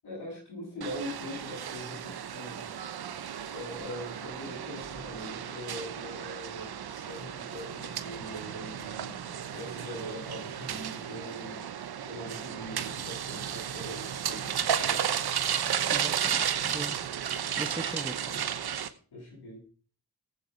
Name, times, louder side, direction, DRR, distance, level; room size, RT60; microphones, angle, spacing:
voice 1, 0.0-2.6 3.5-11.6 12.0-15.0 19.1-19.6, equal, 85° left, -2 dB, 7.9 m, -42 dB
sound 1, 0.8-18.9, right 9 dB, 75° right, 1.0 m, -33 dB
voice 2, 15.9-17.0 17.6-18.5, right 2 dB, 15° right, 12 dB, 1.0 m, -39 dB
15.5 x 8.4 x 4.5 m, 0.41 s
cardioid pair, 45°, 38 cm